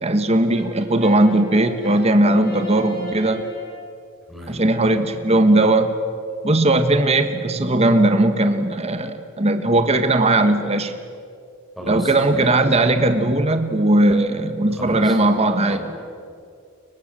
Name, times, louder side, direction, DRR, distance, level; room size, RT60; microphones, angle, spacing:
voice 1, 0.0-3.4 4.5-5.9 6.4-10.9 11.9-15.8, right 1 dB, 30° right, 8 dB, 1.4 m, -18 dB
Brass instrument, 0.5-3.9, equal, 45° left, 7.0 m, -37 dB
voice 2, 4.3-4.6 5.6-5.7 11.8-12.7 14.7-15.2 15.7-15.8, equal, ahead, -2 dB, 6.4 m, -34 dB
29.5 x 23.5 x 7.6 m, 2.3 s
head